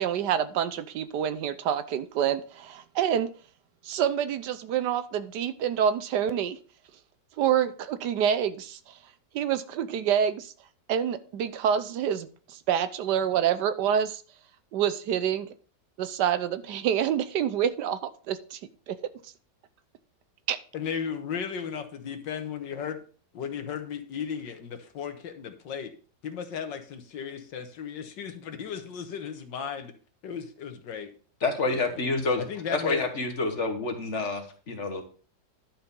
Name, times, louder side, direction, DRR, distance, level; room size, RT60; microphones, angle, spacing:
voice 1, 0.0-3.3 3.8-6.6 7.4-8.9 9.3-10.5 10.9-14.2 14.7-15.5 16.0-18.0 18.3-18.6 18.9-19.0 20.5-20.6, right 9 dB, 75° right, 13 dB, 1.3 m, -27 dB
voice 2, 20.7-22.9 23.4-25.9 26.2-29.9 30.2-31.1 31.7-32.1 32.4-33.0, left 7 dB, 85° left, 7 dB, 1.8 m, -35 dB
voice 3, 31.4-35.0, left 3 dB, 45° left, 4 dB, 1.7 m, -28 dB
11.0 x 4.4 x 5.4 m, 0.41 s
omnidirectional pair, 1.9 m